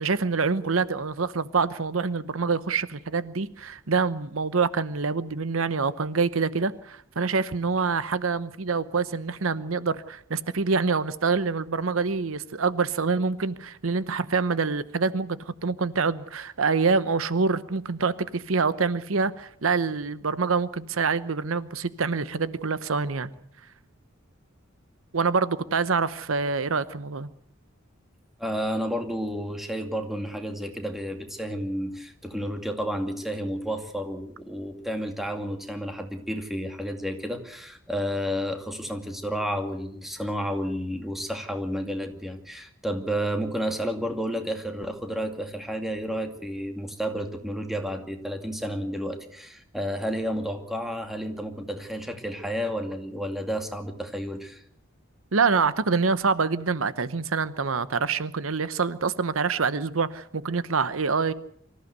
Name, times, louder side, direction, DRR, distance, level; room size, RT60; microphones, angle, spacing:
voice 1, 0.0-23.3 25.1-27.3 55.3-61.3, right 4 dB, 80° right, 15 dB, 0.9 m, -26 dB
voice 2, 28.4-54.6, equal, ahead, 5 dB, 2.4 m, -31 dB
25.0 x 15.0 x 8.1 m, 0.67 s
head